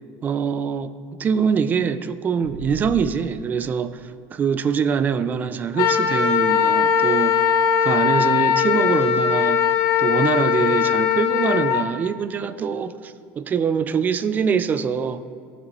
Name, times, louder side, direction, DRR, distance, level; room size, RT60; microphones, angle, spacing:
voice 1, 0.2-0.9 1.2-7.5 7.8-9.7 10.0-15.2, right 6 dB, 25° right, 12 dB, 0.4 m, -24 dB
sound 1, 2.4-3.0, right 2 dB, 65° right, 1.7 m, -35 dB
Wind instrument woodwind instrument, 5.8-11.8, left 8 dB, 60° left, 0.7 m, -19 dB
16.5 x 6.0 x 3.1 m, 2.1 s
supercardioid pair, 130°, 7 cm